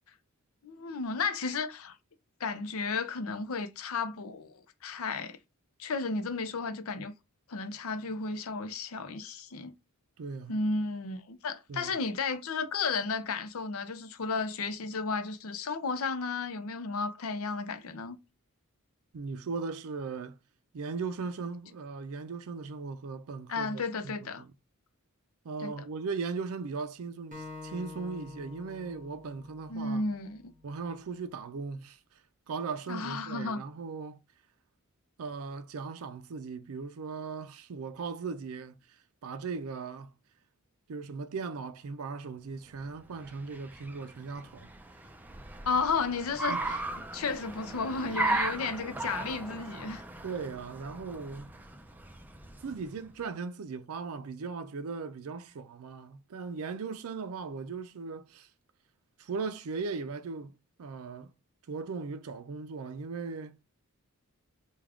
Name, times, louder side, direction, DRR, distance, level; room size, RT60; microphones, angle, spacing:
voice 1, 0.6-2.0 2.4-5.4 5.8-7.1 7.5-9.7 10.5-18.2 23.5-24.4 25.6-25.7 29.7-30.5 32.9-33.6 45.6-46.6 47.1-50.0, left 4 dB, 75° left, 0.6 m, -33 dB
voice 2, 10.2-10.5 11.7-11.9 19.1-20.4 20.7-24.5 25.4-30.0 30.6-32.0 32.5-34.2 35.2-38.8 39.2-40.1 40.9-44.7 46.5-46.7 50.2-51.5 52.6-58.5 59.2-60.5 60.8-61.3 61.7-63.6, right 4 dB, 75° right, 0.4 m, -38 dB
Acoustic guitar, 27.3-30.6, left 3 dB, 35° right, 1.1 m, -47 dB
Car, 42.8-53.1, right 2 dB, 10° right, 0.4 m, -37 dB
3.5 x 2.3 x 3.5 m
head